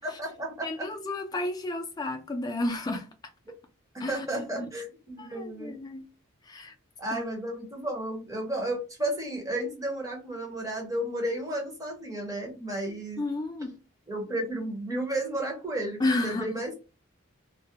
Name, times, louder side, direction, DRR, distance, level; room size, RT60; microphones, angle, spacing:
voice 1, 0.0-0.9 3.9-5.8 7.0-13.2 14.1-16.7, right 1 dB, 15° right, 0.7 m, -33 dB
voice 2, 0.6-3.0 4.0-4.3 4.5-4.7 5.2-6.1 6.5-6.7 7.1-7.2 13.2-13.7 16.0-16.6, left 2 dB, 20° left, 0.3 m, -31 dB
2.2 x 2.1 x 2.7 m
head